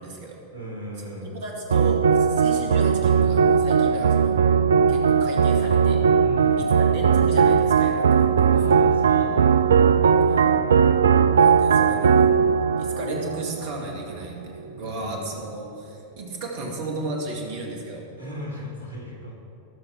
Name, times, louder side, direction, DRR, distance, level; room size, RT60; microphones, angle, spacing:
voice 1, 0.0-0.4 1.2-4.4 4.9-6.0 6.6-8.0 8.4-8.5 10.3-10.5 11.3-12.3 12.8-18.0, right 2 dB, 50° right, 0 dB, 2.2 m, -34 dB
voice 2, 0.5-1.4 6.2-6.7 8.5-9.7 14.8-15.3 18.2-19.3, equal, 75° left, -3 dB, 3.0 m, -37 dB
sound 1, 1.7-14.2, right 6 dB, 70° right, 0.3 m, -19 dB
19.5 x 6.5 x 4.6 m, 2.9 s
figure-of-eight pair, 90°, 0 cm